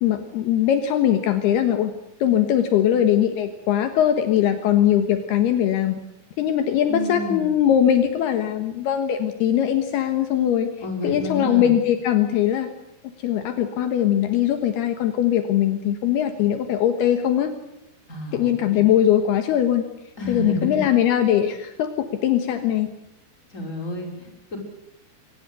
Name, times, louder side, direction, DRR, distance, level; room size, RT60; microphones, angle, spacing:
voice 1, 0.0-1.9 2.2-6.0 6.4-10.7 11.0-12.7 13.2-17.5 18.3-19.8 20.3-22.9, left 10 dB, 75° left, 7 dB, 3.2 m, -21 dB
voice 2, 6.9-7.5 10.8-11.7 18.1-18.8 20.2-20.8 23.5-24.6, left 1 dB, 15° left, 2 dB, 5.7 m, -30 dB
23.5 x 20.0 x 8.2 m, 0.83 s
omnidirectional pair, 4.9 m